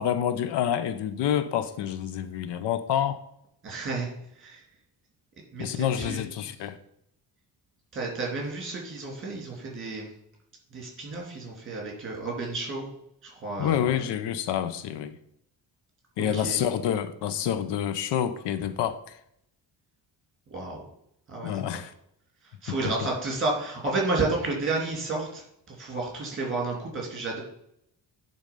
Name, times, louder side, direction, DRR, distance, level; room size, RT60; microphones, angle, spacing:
voice 1, 0.0-3.2 5.6-6.8 13.6-15.2 16.2-19.0 21.4-21.9 22.7-22.8, left 9 dB, 80° left, 0.8 m, -28 dB
voice 2, 3.6-4.1 4.4-4.6 5.5-6.2 7.9-10.1 10.7-12.9 13.2-13.8 16.3-16.6 20.5-20.8 21.3-21.8 22.6-27.4, right 3 dB, 30° right, 3.0 m, -31 dB
10.5 x 4.0 x 5.4 m
cardioid pair, 165°, 41 cm